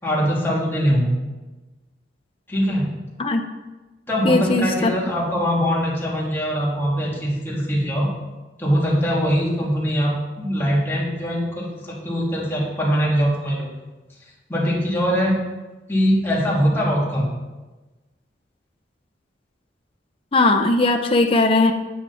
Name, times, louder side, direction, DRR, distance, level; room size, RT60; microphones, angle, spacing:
voice 1, 0.0-1.2 2.5-3.0 4.1-8.1 8.6-13.8 14.5-15.4 15.9-17.3, equal, 15° left, -5 dB, 2.8 m, -22 dB
voice 2, 4.2-4.9 20.3-21.7, left 2 dB, 30° left, 4 dB, 0.6 m, -18 dB
9.4 x 9.1 x 4.2 m, 1.2 s
head